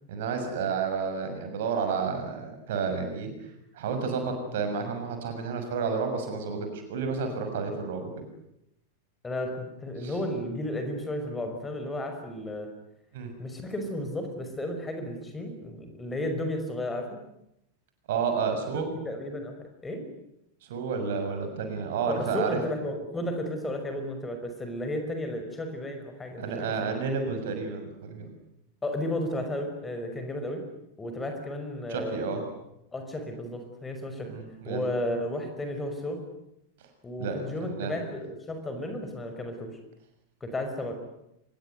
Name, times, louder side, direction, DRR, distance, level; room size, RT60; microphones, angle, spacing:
voice 1, 0.1-3.3 3.7-8.1 10.0-10.1 13.1-13.3 18.1-18.9 20.6-22.6 26.4-28.3 31.9-32.4 34.3-34.8 37.2-37.9, right 5 dB, 55° right, 6 dB, 6.5 m, -31 dB
voice 2, 9.2-12.7 13.4-17.1 18.7-19.6 19.8-20.1 22.1-26.9 28.8-30.6 31.0-32.2 32.9-34.3 34.7-36.2 37.0-39.7 40.4-40.9, left 1 dB, 15° left, 5 dB, 5.7 m, -33 dB
25.0 x 22.0 x 9.5 m, 0.83 s
figure-of-eight pair, 90°, 0 cm